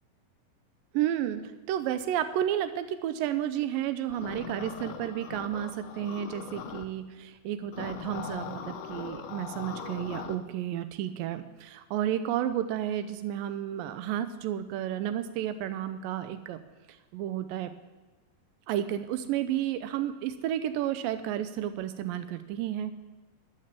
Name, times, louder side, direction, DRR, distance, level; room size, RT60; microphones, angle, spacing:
voice 1, 0.9-1.4 1.7-16.6 17.1-17.7 18.7-22.9, right 11 dB, 90° right, 10 dB, 2.3 m, -32 dB
sound 1, 4.1-6.9 7.7-10.4, left 7 dB, 75° left, 2.3 m, -40 dB
13.5 x 9.9 x 7.3 m, 1.2 s
omnidirectional pair, 4.0 m